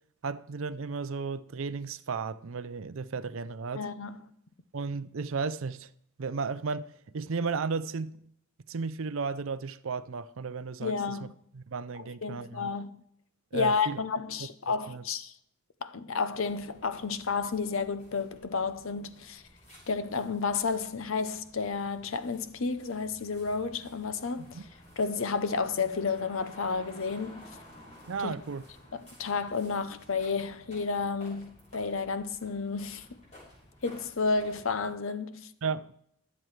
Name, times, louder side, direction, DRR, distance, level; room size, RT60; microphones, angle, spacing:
voice 1, 0.2-3.9 4.7-5.9 6.2-6.9 7.1-8.2 8.7-11.3 11.5-12.7 13.5-14.0 14.7-15.0 24.5-24.6 28.1-28.7 35.6-35.9, right 5 dB, 65° right, 0.5 m, -34 dB
voice 2, 3.7-4.2 10.8-11.3 12.0-13.0 13.5-15.3 15.8-19.4 19.9-24.6 25.0-27.5 28.2-28.3 28.9-33.1 33.8-35.5, left 4 dB, 65° left, 0.7 m, -31 dB
sound 1, 16.3-34.9, equal, 30° left, 6.4 m, -54 dB
23.0 x 7.8 x 3.3 m
head